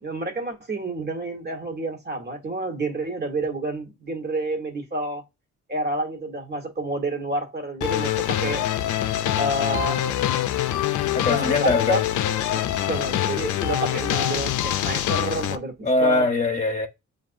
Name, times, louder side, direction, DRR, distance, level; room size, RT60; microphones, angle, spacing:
voice 1, 0.0-5.2 5.7-8.7 9.4-10.1 11.3-12.0 12.5-16.3, right 1 dB, 35° right, 1.6 m, -29 dB
sound 1, 7.8-15.6, left 12 dB, 75° left, 0.5 m, -25 dB
voice 2, 11.1-12.0 15.8-16.9, left 2 dB, 25° left, 1.2 m, -22 dB
7.3 x 2.7 x 2.6 m
cardioid pair, 90°, 30 cm